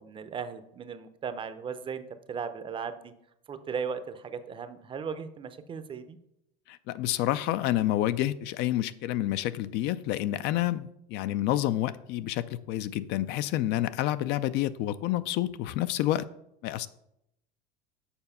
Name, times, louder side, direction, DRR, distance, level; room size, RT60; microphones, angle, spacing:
voice 1, 0.0-2.0 2.3-3.1 3.5-6.2, right 6 dB, 25° right, 11 dB, 0.6 m, -37 dB
voice 2, 6.7-16.3 16.6-16.9, left 14 dB, 55° left, 14 dB, 0.4 m, -29 dB
7.0 x 5.1 x 5.5 m, 0.79 s
cardioid pair, 140°, 21 cm